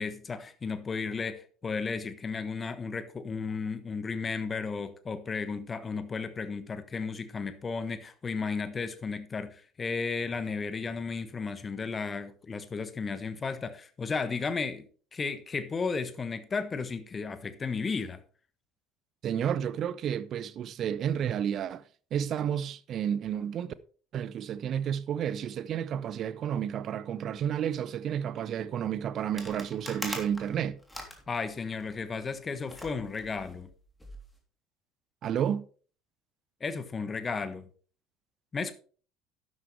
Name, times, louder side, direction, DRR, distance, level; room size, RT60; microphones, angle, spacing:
voice 1, 0.0-14.9 15.1-18.2 31.3-33.7 36.6-37.7 38.5-38.7, left 4 dB, 25° left, 1.3 m, -34 dB
voice 2, 19.2-21.8 22.1-23.7 24.1-30.8 35.2-35.6, right 9 dB, 45° right, 0.7 m, -31 dB
sound 1, 29.4-32.0 32.7-34.3, left 1 dB, 5° left, 3.1 m, -42 dB
12.0 x 9.6 x 3.3 m
figure-of-eight pair, 60°, 0 cm